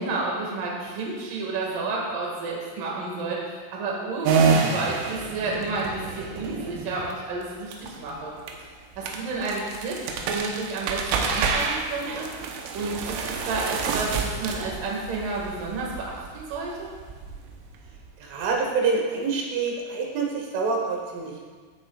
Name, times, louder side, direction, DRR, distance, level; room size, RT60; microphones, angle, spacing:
voice 1, 0.0-8.3 9.0-12.3 12.7-13.0 13.3-16.9, right 3 dB, 55° right, -3 dB, 2.8 m, -31 dB
sound 1, 4.2-18.5, right 5 dB, 90° right, 3.5 m, -29 dB
voice 2, 18.2-21.5, right 4 dB, 75° right, -1 dB, 3.6 m, -26 dB
15.5 x 8.2 x 2.4 m, 1.5 s
omnidirectional pair, 5.9 m